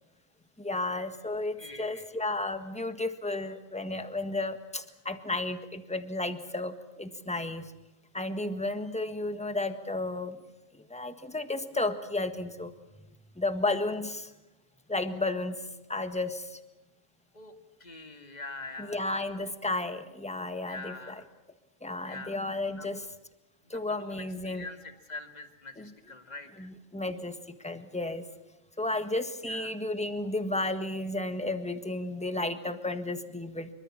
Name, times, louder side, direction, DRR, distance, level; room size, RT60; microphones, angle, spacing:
voice 1, 0.6-7.6 8.1-10.4 10.9-12.7 13.4-14.3 14.9-15.6 15.9-16.6 18.9-21.2 21.8-23.0 23.7-24.6 25.8-25.9 26.6-27.4 27.6-28.2 28.8-33.7, left 2 dB, 5° left, 9 dB, 1.5 m, -33 dB
voice 2, 1.6-2.1 17.3-17.5 17.8-19.2 20.7-21.3 22.0-22.5 22.8-22.9 23.7-26.7 29.5-29.7, left 3 dB, 30° left, 7 dB, 2.3 m, -44 dB
25.5 x 24.5 x 7.4 m, 0.97 s
omnidirectional pair, 1.4 m